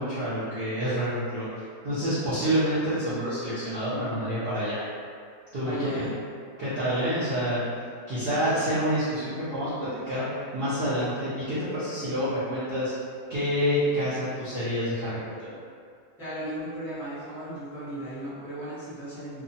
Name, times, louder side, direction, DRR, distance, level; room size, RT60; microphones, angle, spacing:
voice 1, 0.0-1.5 1.8-4.8 5.5-6.0 6.6-7.6 8.1-12.9 13.3-15.5, equal, 50° right, -13 dB, 0.8 m, -28 dB
voice 2, 5.6-6.1 16.2-19.4, equal, ahead, -14 dB, 0.8 m, -35 dB
2.8 x 2.2 x 2.6 m, 2.2 s
omnidirectional pair, 1.6 m